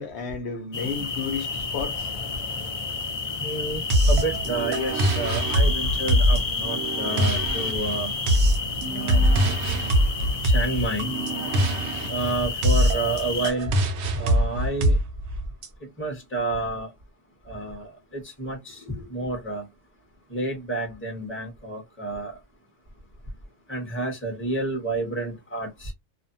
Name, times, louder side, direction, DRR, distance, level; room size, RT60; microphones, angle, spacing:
voice 1, 0.0-2.1, left 6 dB, 70° left, 0.9 m, -32 dB
sound 1, 0.7-13.5, left 4 dB, 45° left, 0.4 m, -31 dB
voice 2, 3.4-8.1 8.9-9.3 10.5-11.1 12.1-13.7 14.1-14.9 16.0-16.9 17.5-19.6 20.3-22.3 23.7-25.9, right 2 dB, 10° left, 0.9 m, -30 dB
sound 2, 3.9-15.7, equal, 70° right, 0.9 m, -23 dB
2.5 x 2.2 x 2.6 m
omnidirectional pair, 1.2 m